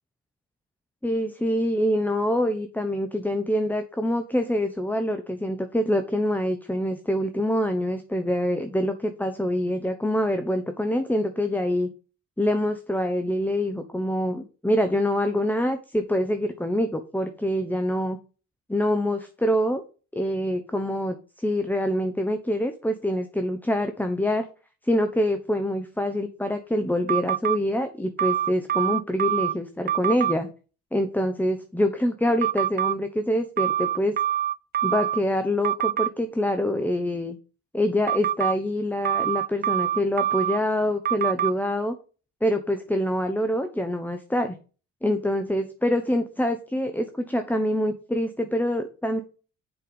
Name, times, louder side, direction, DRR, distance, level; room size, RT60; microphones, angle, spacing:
voice 1, 1.0-11.9 12.4-18.2 18.7-19.8 20.1-24.5 24.8-30.5 30.9-34.2 34.8-37.4 37.7-42.0 42.4-44.5 45.0-49.2, left 1 dB, 5° left, 8 dB, 1.0 m, -25 dB
sound 1, 27.1-27.6 28.2-29.5 29.9-30.3 32.4-33.0 33.6-35.2 35.6-36.1 38.1-38.5 39.1-40.6 41.1-41.5, right 11 dB, 35° right, 0.4 m, -25 dB
7.7 x 5.8 x 5.3 m, 0.35 s
cardioid pair, 90°, 30 cm